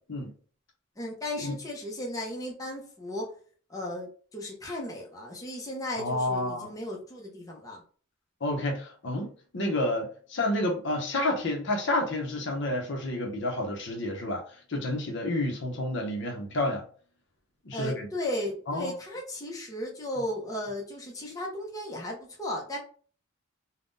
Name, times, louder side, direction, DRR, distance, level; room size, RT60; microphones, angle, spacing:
voice 1, 1.0-3.3 3.7-7.8 17.7-22.8, left 1 dB, 15° left, 0.6 m, -35 dB
voice 2, 6.0-6.7 8.4-14.4 14.7-16.8 17.6-18.1 18.7-18.9, left 1 dB, 60° left, 0.7 m, -30 dB
3.6 x 2.2 x 2.6 m
head